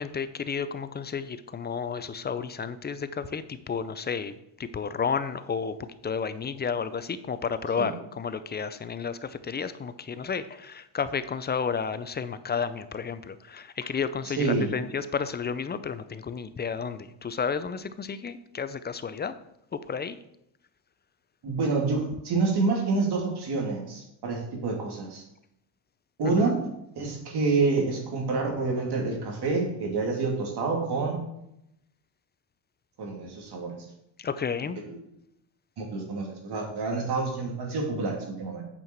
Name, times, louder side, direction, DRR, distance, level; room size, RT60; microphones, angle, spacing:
voice 1, 0.0-19.3 19.7-20.2 26.2-26.5 34.2-34.8, left 6 dB, 25° left, 13 dB, 0.4 m, -32 dB
voice 2, 14.2-14.7 21.4-25.2 26.2-26.6 26.9-31.2 33.0-33.7 34.8-35.0 35.8-38.6, right 3 dB, 55° right, 0 dB, 2.8 m, -27 dB
8.5 x 5.7 x 4.5 m, 0.80 s
cardioid pair, 105°, 47 cm